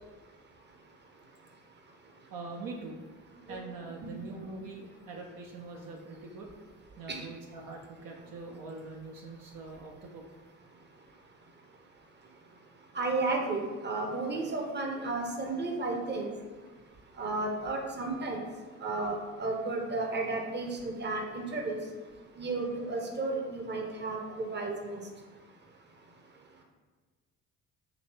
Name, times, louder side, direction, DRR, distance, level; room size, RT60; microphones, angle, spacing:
voice 1, 2.3-3.0 3.5-6.5 7.0-10.2, right 3 dB, 60° right, 0 dB, 0.7 m, -43 dB
voice 2, 12.9-16.3 17.2-18.4 18.8-21.8 22.4-25.0, right 3 dB, 25° right, 2 dB, 0.8 m, -33 dB
4.9 x 2.7 x 3.3 m, 1.4 s
hypercardioid pair, 50°, 39 cm